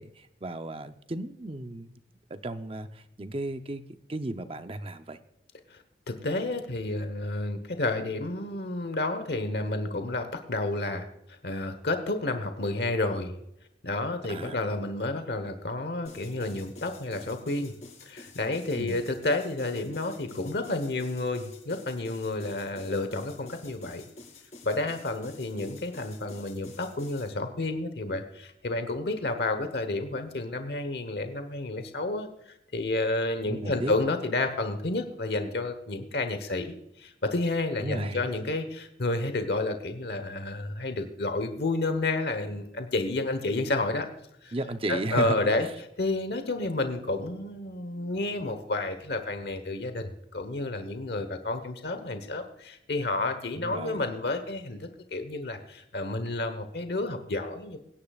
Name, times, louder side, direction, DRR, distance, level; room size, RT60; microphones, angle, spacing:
voice 1, 0.0-1.9 2.3-3.8 4.1-5.2 14.2-14.6 18.7-19.0 33.5-34.0 37.8-38.2 44.5-45.5 53.6-54.1, right 1 dB, 30° right, 9 dB, 0.7 m, -34 dB
voice 2, 5.7-13.3 13.8-17.7 18.0-24.1 24.6-44.1 44.4-44.5 44.9-45.7 46.0-57.8, left 2 dB, 65° left, 8 dB, 1.1 m, -30 dB
sound 1, 16.0-27.3, left 3 dB, 40° left, 5.2 m, -49 dB
23.5 x 10.0 x 2.4 m, 0.80 s
head